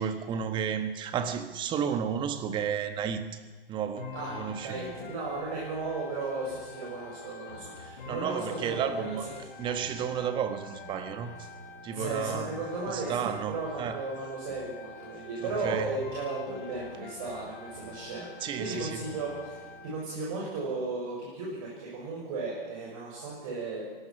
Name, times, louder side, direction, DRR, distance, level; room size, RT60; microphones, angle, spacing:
voice 1, 0.0-3.4 3.7-4.8 7.8-9.3 9.6-11.5 11.8-12.5 12.9-14.0 15.4-15.9 18.4-19.0, right 8 dB, 15° right, 9 dB, 1.4 m, -32 dB
sound 1, 4.0-20.0, left 5 dB, 60° left, 2.7 m, -45 dB
voice 2, 4.1-9.4 11.9-23.9, right 3 dB, 35° right, -4 dB, 6.6 m, -35 dB
23.5 x 18.5 x 6.1 m, 1.4 s
hypercardioid pair, 135°, 29 cm